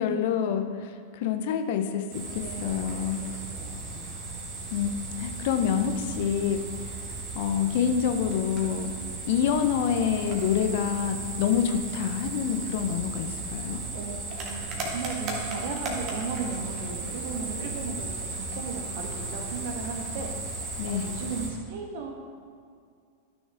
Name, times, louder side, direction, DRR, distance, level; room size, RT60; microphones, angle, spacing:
voice 1, 0.0-3.2 4.7-4.9 5.2-6.7 7.3-13.8 20.8-21.1, left 8 dB, 50° left, 7 dB, 0.6 m, -27 dB
sound 1, 2.1-21.5, right 3 dB, 35° right, 1.7 m, -36 dB
voice 2, 2.4-4.0 4.3-4.4 13.9-20.3 20.9-22.1, right 5 dB, 50° right, 2 dB, 1.3 m, -36 dB
12.5 x 6.3 x 3.5 m, 2.3 s
figure-of-eight pair, 90°, 0 cm